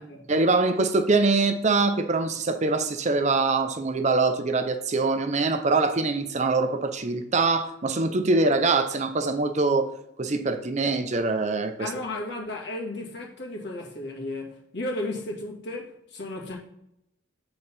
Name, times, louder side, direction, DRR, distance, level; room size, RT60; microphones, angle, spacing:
voice 1, 0.3-9.9 10.2-11.9, right 3 dB, 40° right, 0.6 m, -23 dB
voice 2, 11.8-16.6, left 2 dB, 60° left, 1.9 m, -34 dB
7.9 x 3.9 x 5.5 m
head